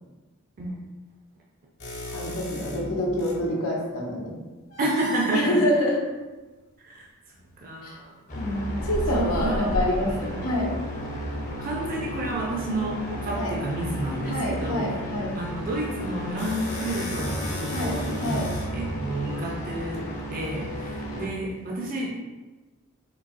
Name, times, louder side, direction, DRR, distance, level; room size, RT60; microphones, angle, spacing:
sound 1, 1.8-3.5 4.7-5.4 7.4-7.5 8.8-10.3 15.8-20.0, left 1 dB, 60° left, 1.0 m, -35 dB
voice 1, 2.1-4.3 5.3-6.0 7.8-7.9 8.4-10.7 13.3-13.5 14.3-15.4 17.7-18.5, left 1 dB, 90° left, -2 dB, 0.8 m, -27 dB
voice 2, 4.8-5.6 6.8-7.1 7.6-8.1 8.7-8.8 9.1-9.7 10.1-10.4 11.6-14.9 15.3-22.1, right 1 dB, 40° right, -2 dB, 0.4 m, -30 dB
sound 2, 8.3-21.3, equal, 40° left, 0.6 m, -34 dB
3.8 x 2.6 x 2.5 m, 1.2 s
head